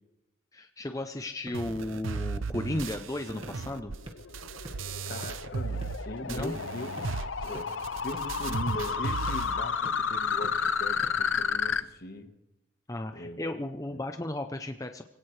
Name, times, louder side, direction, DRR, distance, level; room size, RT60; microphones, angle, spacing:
voice 1, 0.5-3.9 6.2-6.6 12.9-15.0, left 1 dB, 15° left, 7 dB, 0.6 m, -35 dB
sound 1, 1.1-11.9, right 1 dB, 30° right, 1.7 m, -51 dB
sound 2, 1.5-6.0 6.3-9.5, right 4 dB, 80° right, 0.7 m, -36 dB
sound 3, 3.8-11.8, left 6 dB, 75° left, 0.7 m, -32 dB
voice 2, 5.1-7.7 8.0-12.3 13.1-13.4 13.9-14.0, left 1 dB, 50° left, 8 dB, 1.4 m, -40 dB
25.0 x 17.5 x 3.3 m, 0.96 s
head